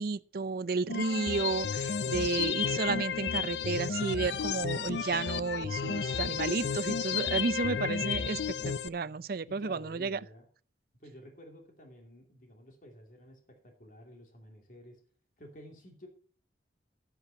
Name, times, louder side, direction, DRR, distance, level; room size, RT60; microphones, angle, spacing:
voice 1, 0.0-10.2, right 4 dB, 50° right, 0.5 m, -32 dB
sound 1, 0.9-8.9, left 7 dB, 65° left, 0.5 m, -32 dB
voice 2, 9.5-10.5 11.0-15.0 15.4-16.1, equal, 45° left, 2.6 m, -52 dB
12.0 x 8.3 x 5.6 m
head